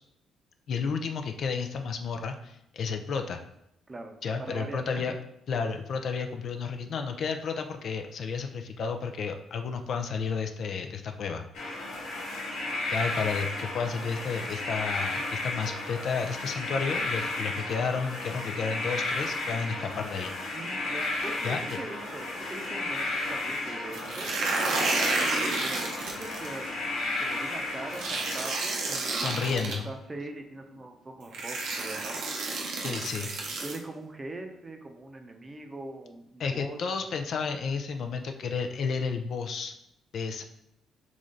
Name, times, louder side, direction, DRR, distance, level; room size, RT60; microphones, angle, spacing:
voice 1, 0.7-3.4 4.2-5.1 5.5-11.4 12.9-20.3 21.4-21.8 29.2-29.9 32.8-33.3 36.4-39.7 40.1-40.4, left 5 dB, 60° left, 5 dB, 0.4 m, -32 dB
voice 2, 3.9-5.0 13.1-13.3 20.5-24.3 24.7-26.8 27.2-32.2 33.6-36.8, right 2 dB, 25° right, 4 dB, 0.6 m, -42 dB
sound 1, 11.5-28.4, left 2 dB, 90° left, 1.2 m, -33 dB
sound 2, 23.9-26.5 27.9-29.7 30.8-30.9 31.3-33.8, right 3 dB, 85° right, 0.8 m, -31 dB
3.8 x 3.2 x 3.8 m, 0.81 s
cardioid pair, 90°, 0 cm